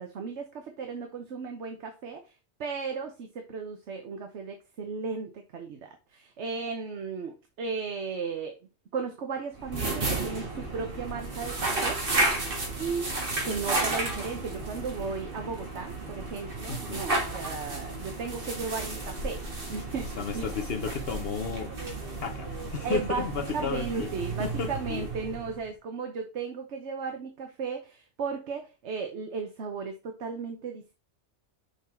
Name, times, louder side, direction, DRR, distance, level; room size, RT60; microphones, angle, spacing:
voice 1, 0.0-2.3 2.6-8.6 8.9-12.0 12.8-19.4 19.7-20.4 22.8-31.0, right 5 dB, 80° right, 1.2 m, -35 dB
sound 1, 9.5-25.7, right 2 dB, 55° right, 1.8 m, -33 dB
voice 2, 16.7-17.0 20.2-21.7 22.2-24.1 24.4-25.1, left 6 dB, 65° left, 0.9 m, -33 dB
6.6 x 3.9 x 4.3 m
omnidirectional pair, 1.2 m